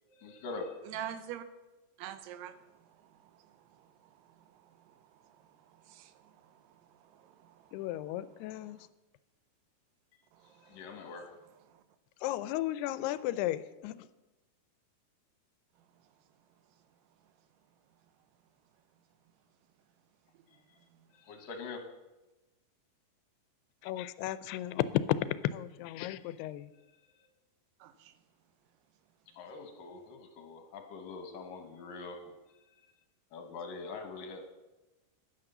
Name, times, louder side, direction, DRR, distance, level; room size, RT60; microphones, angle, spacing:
voice 1, 0.1-0.8 10.4-11.3 20.5-20.8 21.1-21.8 27.2-27.3 29.3-32.2 32.7-32.8 33.3-34.4, left 4 dB, 65° left, 5 dB, 2.6 m, -44 dB
voice 2, 0.8-1.4 2.0-2.5 5.9-6.1 7.1-7.5 27.8-28.1, right 10 dB, 85° right, 11 dB, 2.8 m, -42 dB
voice 3, 7.7-8.9 12.2-14.1 23.8-25.2 25.4-26.7, left 14 dB, 85° left, 15 dB, 2.6 m, -34 dB
10.5 x 9.6 x 6.7 m, 1.1 s
omnidirectional pair, 4.6 m